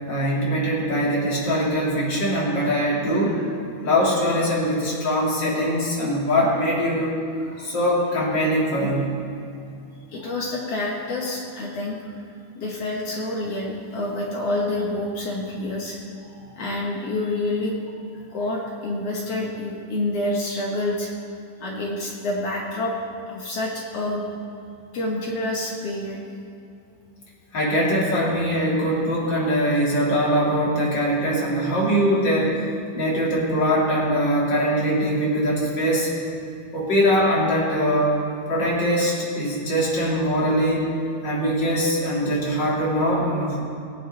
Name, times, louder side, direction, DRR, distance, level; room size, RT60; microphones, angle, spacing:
voice 1, 0.1-3.5 3.8-9.2 27.5-32.6 32.9-36.1 36.7-38.1 38.5-40.8 41.2-43.6, equal, 35° left, -5 dB, 2.7 m, -22 dB
voice 2, 10.1-12.0 12.6-16.0 16.6-17.8 18.3-21.1 21.6-22.9 23.3-24.2 24.9-26.2, left 2 dB, 55° left, -3 dB, 1.9 m, -27 dB
17.5 x 8.7 x 4.0 m, 2.5 s
omnidirectional pair, 4.0 m